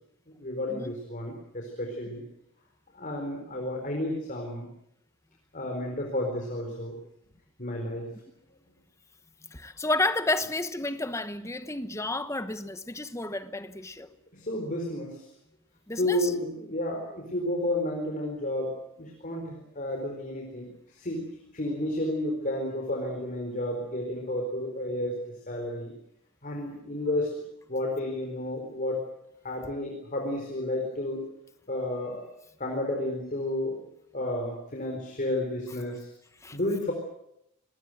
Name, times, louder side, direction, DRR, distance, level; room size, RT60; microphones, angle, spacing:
voice 1, 0.4-2.2 2.9-4.7 5.5-6.9 7.6-8.1 14.3-15.3 16.0-25.2 25.5-25.9 26.4-27.3 27.7-29.1 29.4-31.2 31.7-32.2 32.6-33.8 34.1-36.1 36.5-36.9, left 1 dB, 35° left, 4.4 m, -31 dB
voice 2, 9.5-14.1 15.9-16.3 36.4-36.6, left 2 dB, 15° left, 1.1 m, -31 dB
26.0 x 20.0 x 7.9 m
head